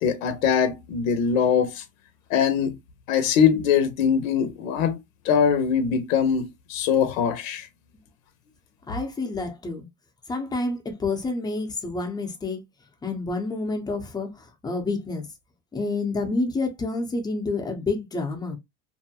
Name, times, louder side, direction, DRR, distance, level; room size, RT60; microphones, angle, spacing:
voice 1, 0.0-1.8 2.3-2.7 3.1-5.0 5.2-7.7, left 7 dB, 90° left, 0.7 m, -22 dB
voice 2, 8.9-9.9 10.3-12.6 13.0-15.3 15.7-18.6, left 3 dB, 10° left, 0.5 m, -28 dB
2.6 x 2.1 x 2.7 m
supercardioid pair, 130°, 39 cm